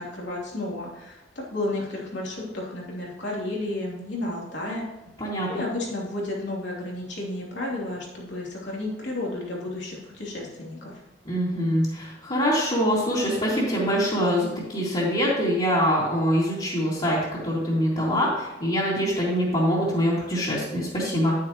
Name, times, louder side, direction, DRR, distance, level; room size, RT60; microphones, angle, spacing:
voice 1, 0.0-4.9 5.5-11.0, left 2 dB, 90° left, -3 dB, 3.1 m, -32 dB
voice 2, 5.2-5.6 11.3-17.2 17.4-21.3, equal, 35° left, -9 dB, 2.5 m, -24 dB
10.0 x 9.5 x 3.0 m, 1.0 s
head